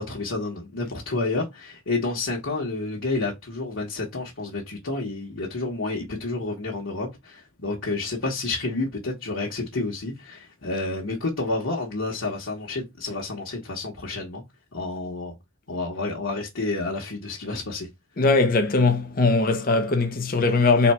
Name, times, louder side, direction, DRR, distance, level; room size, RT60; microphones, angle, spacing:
voice 1, 0.0-14.4 14.7-15.3 15.7-17.9, left 3 dB, 85° left, 1.3 m, -30 dB
voice 2, 18.2-20.9, left 3 dB, 45° left, 0.6 m, -20 dB
4.1 x 2.3 x 4.3 m
head